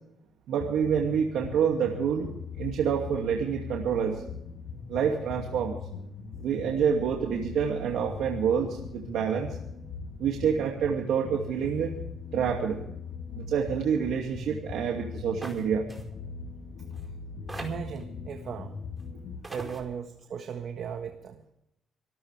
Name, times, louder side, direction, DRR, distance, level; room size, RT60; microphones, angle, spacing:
voice 1, 0.5-2.3 2.6-4.2 4.9-5.8 6.4-9.6 10.2-11.9 12.3-12.8 13.3-15.8, right 7 dB, 80° right, 1 dB, 2.5 m, -27 dB
sound 1, 0.6-19.4, left 5 dB, 75° left, 4.8 m, -40 dB
sound 2, 15.4-15.6 15.9-16.0 16.9-17.0 17.5-18.0 19.0-19.1 19.4-19.8, right 2 dB, 15° right, 4.8 m, -40 dB
voice 2, 17.5-18.8 19.5-21.5, right 7 dB, 65° right, 5 dB, 1.6 m, -37 dB
26.0 x 13.5 x 3.5 m, 0.79 s
cardioid pair, 90°, 0 cm